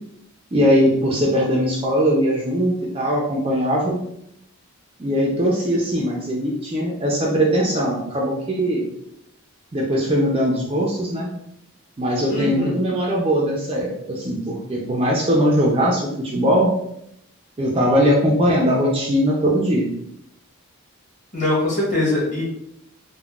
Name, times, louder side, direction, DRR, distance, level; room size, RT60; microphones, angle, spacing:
voice 1, 0.5-4.0 5.0-8.9 9.7-11.3 12.0-16.7 17.6-19.9, equal, 25° right, -2 dB, 0.4 m, -20 dB
voice 2, 12.3-12.7 21.3-22.4, left 2 dB, 35° left, -7 dB, 1.3 m, -22 dB
3.7 x 2.1 x 2.3 m, 0.77 s
head